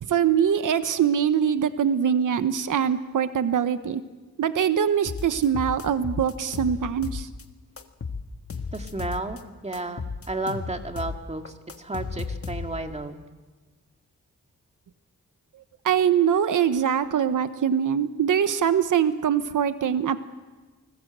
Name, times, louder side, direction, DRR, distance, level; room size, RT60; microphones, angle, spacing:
voice 1, 0.0-4.0 4.4-7.3 15.8-20.2, right 8 dB, 80° right, 11 dB, 1.1 m, -23 dB
sound 1, 5.1-7.4 7.8-9.4 9.7-12.9, left 5 dB, 45° left, 1.7 m, -34 dB
voice 2, 8.7-13.2, right 2 dB, 20° right, 5 dB, 2.1 m, -33 dB
29.5 x 20.0 x 8.0 m, 1.3 s
wide cardioid pair, 110°, 31 cm